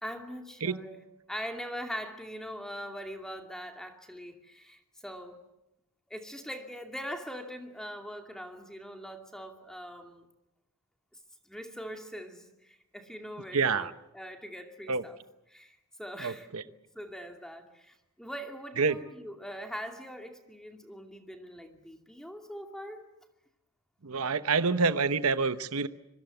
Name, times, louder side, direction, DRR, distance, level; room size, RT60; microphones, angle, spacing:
voice 1, 0.0-5.4 6.1-10.3 11.5-15.2 15.5-23.1, equal, 5° left, 4 dB, 2.4 m, -42 dB
voice 2, 13.5-13.9 14.9-15.0 16.2-16.6 18.8-19.0 24.0-25.9, right 4 dB, 70° right, 12 dB, 1.0 m, -27 dB
25.5 x 24.0 x 8.0 m, 0.91 s
head